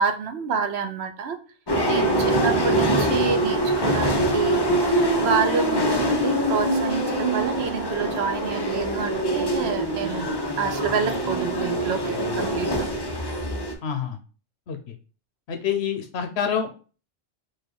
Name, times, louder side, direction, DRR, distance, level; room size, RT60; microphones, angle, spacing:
voice 1, 0.0-1.4 1.9-4.7 5.2-10.3 10.6-12.9, right 6 dB, 75° right, 7 dB, 1.0 m, -28 dB
sound 1, 1.7-13.7, right 1 dB, 25° left, 0.7 m, -24 dB
voice 2, 13.8-14.2 14.7-14.9 15.5-16.8, left 8 dB, 75° left, 6 dB, 1.1 m, -27 dB
4.7 x 2.5 x 4.6 m, 0.36 s
omnidirectional pair, 1.1 m